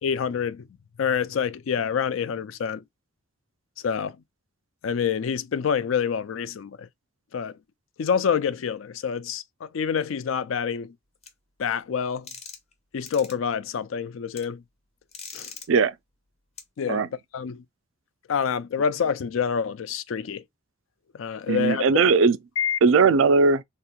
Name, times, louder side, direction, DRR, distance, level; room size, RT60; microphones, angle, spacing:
voice 1, 0.0-0.6 1.0-2.8 3.8-4.2 4.8-6.9 7.3-7.5 8.0-10.9 11.6-12.3 12.9-14.6 15.3-15.5 16.8-17.6 18.3-20.4 21.1-22.0 22.6-22.8, left 7 dB, 75° left, 0.4 m, -27 dB
sound 1, 11.2-11.3 12.3-12.7 13.1-13.3 14.3-14.4 15.1-15.7 16.6-16.7, left 5 dB, 35° left, 0.7 m, -40 dB
voice 2, 21.5-22.4 22.8-23.6, right 4 dB, 70° right, 0.4 m, -19 dB
3.4 x 2.9 x 2.3 m
head